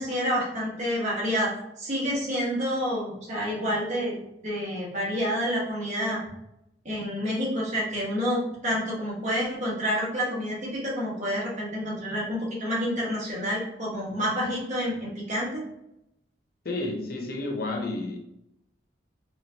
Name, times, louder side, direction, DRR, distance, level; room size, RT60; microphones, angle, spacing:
voice 1, 0.0-6.2 6.8-15.6, equal, 40° right, -6 dB, 1.4 m, -28 dB
voice 2, 16.6-18.2, left 2 dB, 55° left, 2 dB, 0.7 m, -31 dB
4.2 x 2.7 x 2.9 m, 0.82 s
head